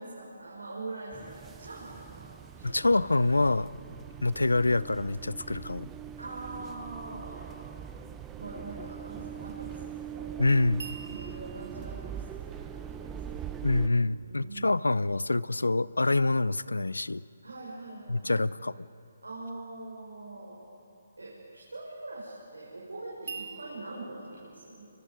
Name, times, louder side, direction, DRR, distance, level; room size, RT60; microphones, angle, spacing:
voice 1, 0.0-3.0 6.2-7.6 8.4-10.5 11.0-13.5 14.2-14.7 17.4-18.5 19.2-20.7 21.2-24.9, right 2 dB, 90° right, -5 dB, 5.9 m, -43 dB
sound 1, 1.1-13.9, right 9 dB, 15° right, 0.9 m, -42 dB
voice 2, 2.6-3.7 4.2-5.9 10.4-10.9 13.6-17.2 18.1-18.7, left 2 dB, 90° left, 20 dB, 0.5 m, -26 dB
sound 2, 10.8-13.9 23.3-24.1, right 5 dB, 60° right, 2.5 m, -45 dB
29.5 x 24.0 x 5.3 m, 2.7 s
figure-of-eight pair, 145°, 0 cm